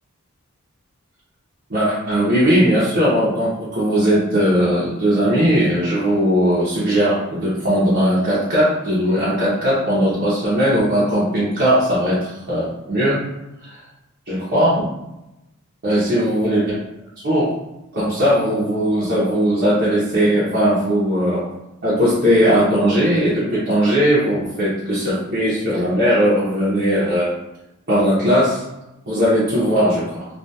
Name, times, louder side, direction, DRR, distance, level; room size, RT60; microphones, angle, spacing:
voice 1, 1.7-13.2 13.6-13.8 14.3-14.8 15.8-16.6 17.2-17.5 17.9-21.4 21.8-27.3 27.9-28.6 29.1-30.3, equal, 50° right, -9 dB, 0.7 m, -18 dB
2.7 x 2.3 x 2.2 m, 0.93 s
head